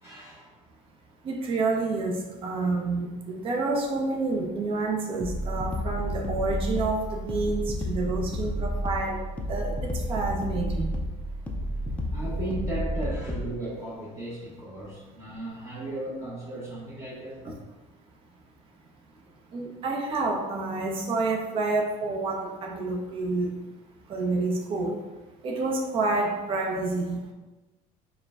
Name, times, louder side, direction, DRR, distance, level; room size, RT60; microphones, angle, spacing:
voice 1, 0.0-0.5 12.1-17.4, right 1 dB, 20° right, -8 dB, 1.0 m, -36 dB
voice 2, 1.2-9.2 9.5-10.9 19.5-23.5 24.1-25.0 25.4-27.2, right 3 dB, 40° right, 1 dB, 0.7 m, -28 dB
sound 1, 5.2-13.5, equal, 10° left, 0.4 m, -31 dB
4.7 x 2.2 x 3.6 m, 1.1 s
cardioid pair, 135°, 15 cm